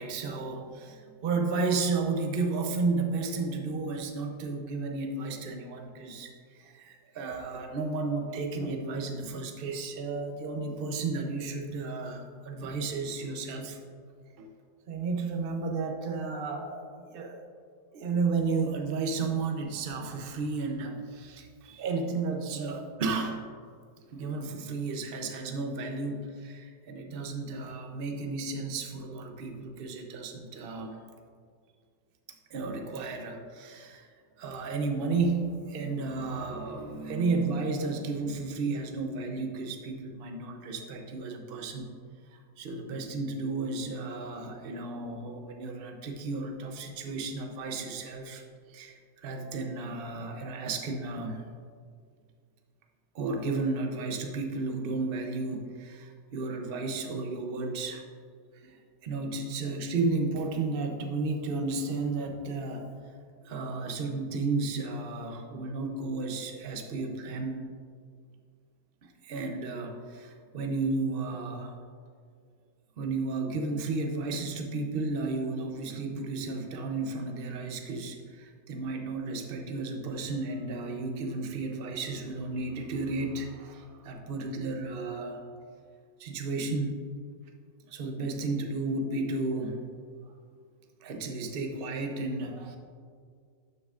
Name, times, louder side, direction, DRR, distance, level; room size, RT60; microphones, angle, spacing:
voice 1, 0.0-13.8 14.4-14.5 14.9-17.4 17.9-23.4 24.1-31.0 32.5-34.1 34.4-41.9 42.6-48.4 48.7-51.4 53.1-58.0 58.6-58.8 59.0-62.8 63.4-67.6 69.0-71.8 73.0-85.4 86.2-87.0 87.9-89.8 91.0-92.8, right 3 dB, 55° right, 3 dB, 0.6 m, -33 dB
12.0 x 6.7 x 2.5 m, 2.1 s
omnidirectional pair, 2.0 m